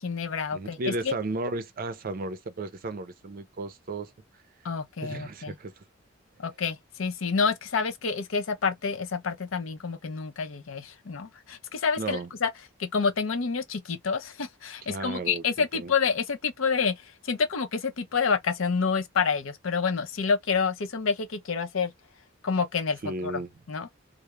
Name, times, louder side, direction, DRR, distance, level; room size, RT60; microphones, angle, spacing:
voice 1, 0.0-1.1 4.6-5.5 6.4-12.5 12.8-21.9 22.4-23.4 23.7-23.9, left 5 dB, 85° left, 0.6 m, -28 dB
voice 2, 0.5-4.1 5.0-5.8 12.0-12.3 14.9-15.9 23.0-23.5, right 2 dB, 45° right, 0.5 m, -34 dB
2.3 x 2.0 x 2.9 m
head